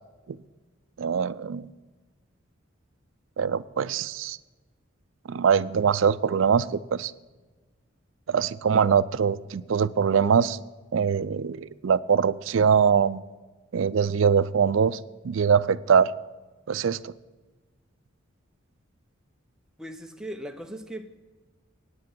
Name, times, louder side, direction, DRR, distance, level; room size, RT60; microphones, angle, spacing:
voice 1, 1.0-1.7 3.4-4.4 5.3-7.1 8.3-10.6 10.9-13.2 13.7-15.0 15.2-16.1 16.7-17.1, right 6 dB, 70° right, 0.4 m, -23 dB
voice 2, 19.8-21.2, right 1 dB, 5° right, 0.7 m, -38 dB
9.8 x 9.2 x 6.0 m
head